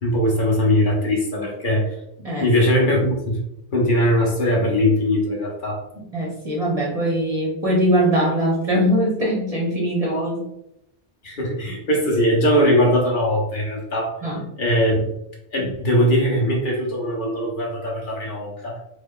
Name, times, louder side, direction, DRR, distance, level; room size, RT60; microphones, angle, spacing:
voice 1, 0.0-1.9 2.4-3.4 3.7-5.8 11.2-14.1 14.6-15.1 15.5-18.8, equal, 50° left, -2 dB, 0.8 m, -20 dB
voice 2, 2.2-2.8 5.9-10.5 14.2-14.5, equal, 40° right, -3 dB, 0.6 m, -22 dB
3.2 x 2.2 x 3.6 m, 0.83 s
omnidirectional pair, 1.2 m